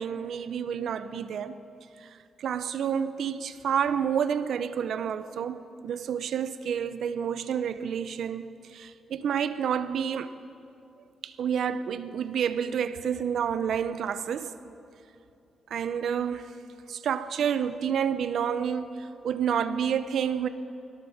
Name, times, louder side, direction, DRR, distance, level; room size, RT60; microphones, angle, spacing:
voice 1, 0.0-1.6 2.0-2.1 2.4-10.3 11.2-14.5 15.7-16.5 16.9-20.5, right 8 dB, 70° right, 0.8 m, -29 dB
21.5 x 18.0 x 7.2 m
cardioid pair, 125°, 0 cm